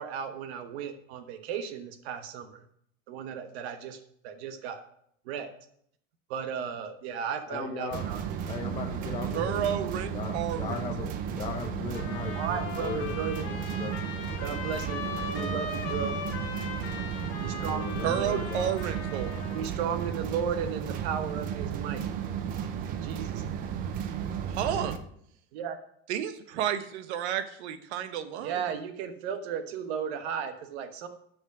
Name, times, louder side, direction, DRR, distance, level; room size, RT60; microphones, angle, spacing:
voice 1, 0.0-2.6 3.1-4.8 5.2-5.5 6.3-8.2 12.3-13.5 14.4-16.1 17.4-18.4 19.5-22.0 23.0-23.6 25.5-25.8 28.4-31.1, right 7 dB, 70° right, 8 dB, 1.3 m, -35 dB
voice 2, 7.5-8.1 8.5-14.0 15.3-15.6 17.6-18.7 24.4-25.0, left 6 dB, 15° left, 2 dB, 0.6 m, -38 dB
sound 1, 7.9-25.0, right 8 dB, 25° right, 0.5 m, -34 dB
voice 3, 9.3-11.2 18.0-19.3 24.5-24.9 26.1-28.6, right 10 dB, 85° right, 10 dB, 1.1 m, -31 dB
sound 2, 11.9-19.7, left 5 dB, 60° left, 1.8 m, -39 dB
10.5 x 5.5 x 6.1 m, 0.71 s
supercardioid pair, 175°, 32 cm